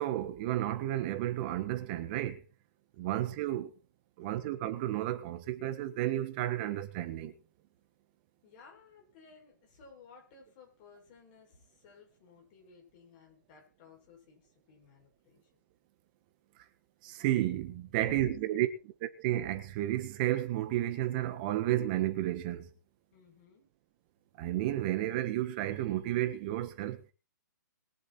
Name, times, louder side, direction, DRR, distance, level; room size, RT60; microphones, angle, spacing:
voice 1, 0.0-2.4 3.0-3.7 4.2-7.3 17.0-18.7 19.2-22.7 24.4-27.0, right 14 dB, 25° right, 1.6 m, -32 dB
voice 2, 4.2-4.5 8.4-15.6 18.0-18.3 23.1-23.7, left 3 dB, 30° left, 6.7 m, -55 dB
22.5 x 7.6 x 4.6 m
hypercardioid pair, 165°, 11 cm